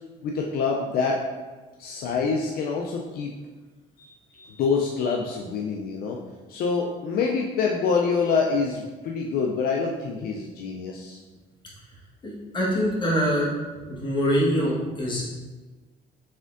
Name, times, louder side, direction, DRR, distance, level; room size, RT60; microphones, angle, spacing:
voice 1, 0.2-1.2 1.8-3.3 4.0-6.2 6.5-11.2, left 5 dB, 65° left, 0 dB, 0.4 m, -26 dB
voice 2, 12.2-13.5 14.0-15.2, equal, 25° left, -5 dB, 1.3 m, -24 dB
4.2 x 3.5 x 2.5 m, 1.3 s
cardioid pair, 110°, 17 cm